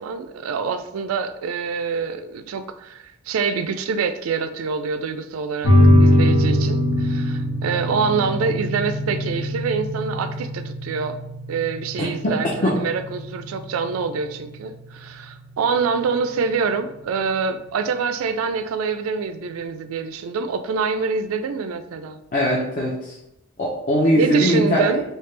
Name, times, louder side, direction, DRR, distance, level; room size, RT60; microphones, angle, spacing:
voice 1, 0.0-5.7 6.0-11.2 11.5-22.2 24.1-25.0, right 5 dB, 85° right, 10 dB, 0.3 m, -26 dB
sound 1, 5.6-16.6, left 1 dB, 80° left, 1.0 m, -22 dB
voice 2, 12.0-12.8 22.3-23.2 23.6-25.0, equal, 40° left, -4 dB, 0.6 m, -21 dB
3.3 x 2.8 x 3.2 m, 0.85 s
head